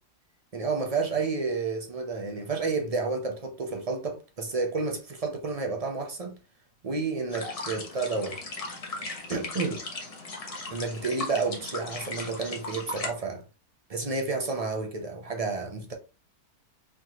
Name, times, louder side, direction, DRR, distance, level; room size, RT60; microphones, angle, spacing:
voice 1, 0.5-6.3 6.8-8.4 9.3-9.8 10.7-13.4 13.9-15.9, right 4 dB, 45° right, 0.5 m, -30 dB
sound 1, 7.3-13.1, left 3 dB, 35° left, 0.6 m, -37 dB
4.3 x 3.1 x 2.8 m
omnidirectional pair, 1.6 m